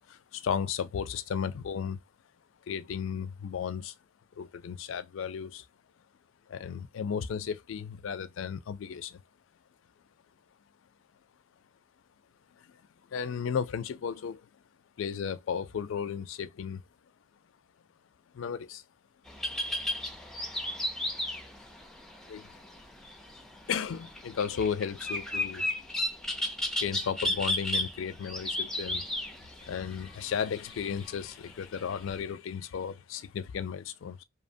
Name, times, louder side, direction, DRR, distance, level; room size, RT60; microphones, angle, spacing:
voice 1, 0.1-2.0 2.7-3.9 4.4-5.7 6.5-9.2 13.1-14.4 15.0-16.8 18.3-18.8 22.3-22.5 23.7-25.7 26.8-29.0 29.6-34.2, left 7 dB, 70° left, 0.4 m, -34 dB
sound 1, 19.3-32.2, left 1 dB, ahead, 0.4 m, -34 dB
2.8 x 2.1 x 2.5 m
head